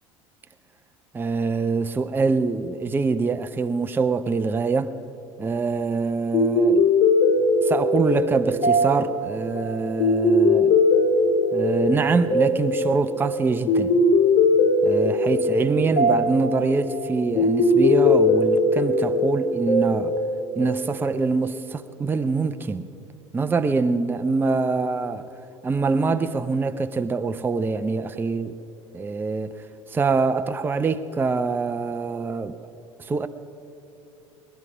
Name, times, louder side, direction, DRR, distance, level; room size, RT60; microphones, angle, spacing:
voice 1, 1.1-5.0 5.4-6.9 7.6-10.8 11.5-14.0 14.8-20.1 20.6-22.9 23.3-25.3 25.6-28.5 28.9-32.7 33.0-33.3, right 4 dB, 15° right, 0.5 m, -24 dB
sound 1, 6.3-21.1, left 2 dB, 55° left, 2.1 m, -20 dB
20.0 x 11.5 x 4.9 m
figure-of-eight pair, 65°, 16 cm